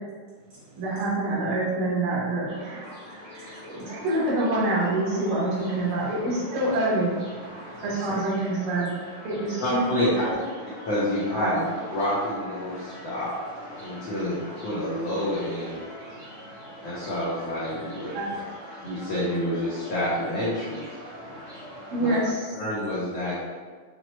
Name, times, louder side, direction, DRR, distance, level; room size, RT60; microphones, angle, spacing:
voice 1, 0.7-2.9 3.3-7.2 7.8-9.0 9.2-10.4 11.3-11.6 18.1-18.3 21.9-22.5, right 2 dB, 80° right, -6 dB, 2.7 m, -26 dB
sound 1, 2.5-22.3, equal, 50° left, 0.8 m, -43 dB
voice 2, 9.6-10.1 10.8-11.6 11.9-13.3 13.8-15.8 16.8-18.1 18.8-20.9 22.0-22.2 22.6-23.4, left 1 dB, 80° left, -9 dB, 1.4 m, -28 dB
voice 3, 16.1-16.9 21.1-21.9, right 1 dB, 55° right, -9 dB, 2.0 m, -53 dB
6.3 x 2.1 x 3.0 m, 1.5 s
omnidirectional pair, 4.0 m